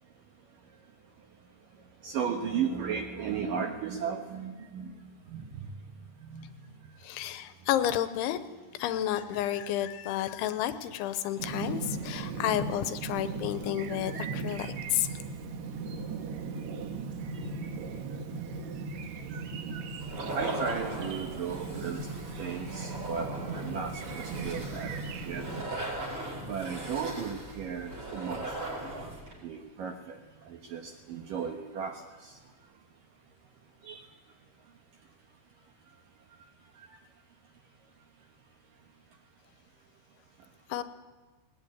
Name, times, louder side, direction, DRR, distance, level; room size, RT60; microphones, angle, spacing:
voice 1, 2.0-4.9 5.3-5.4 6.3-6.5 20.3-22.1 22.4-25.5 26.5-28.4 28.9-29.1 29.4-30.2 30.7-32.3 33.9-34.0, right 6 dB, 70° right, 4 dB, 2.2 m, -35 dB
voice 2, 7.0-8.4 8.7-15.2 40.7-40.8, left 12 dB, 85° left, 11 dB, 3.2 m, -31 dB
Chirp tweet, 11.4-25.6, right 4 dB, 85° right, 1.6 m, -38 dB
sound 1, 20.0-29.3, right 1 dB, 30° right, 5.7 m, -39 dB
19.5 x 19.0 x 9.6 m, 1.3 s
omnidirectional pair, 5.5 m